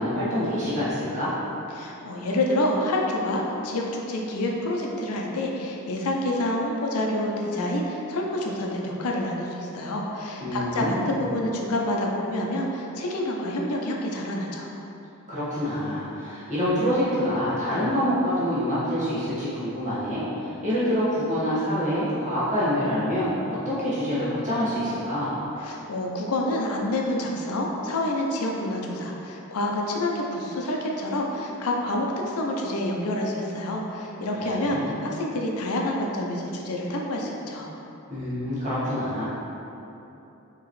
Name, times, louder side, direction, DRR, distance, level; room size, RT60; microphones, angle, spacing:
voice 1, 0.0-1.3 10.4-11.2 15.3-25.4 34.4-34.9 38.1-39.2, equal, 35° right, -11 dB, 1.4 m, -26 dB
voice 2, 1.7-14.7 25.6-37.7, left 1 dB, 80° left, -1 dB, 0.5 m, -28 dB
4.8 x 3.0 x 3.1 m, 3.0 s
head